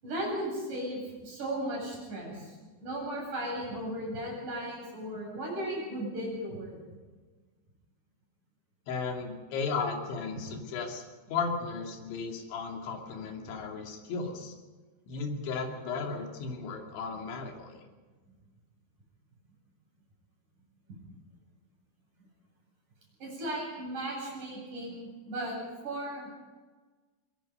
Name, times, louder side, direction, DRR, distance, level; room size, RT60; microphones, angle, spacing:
voice 1, 0.0-6.8 20.9-21.0 23.2-25.6 25.8-26.3, right 1 dB, 40° right, -3 dB, 9.3 m, -36 dB
voice 2, 8.9-11.0 11.3-14.5 15.1-17.8, left 4 dB, 70° left, 2 dB, 4.7 m, -35 dB
24.0 x 22.0 x 5.4 m, 1.3 s
omnidirectional pair, 5.6 m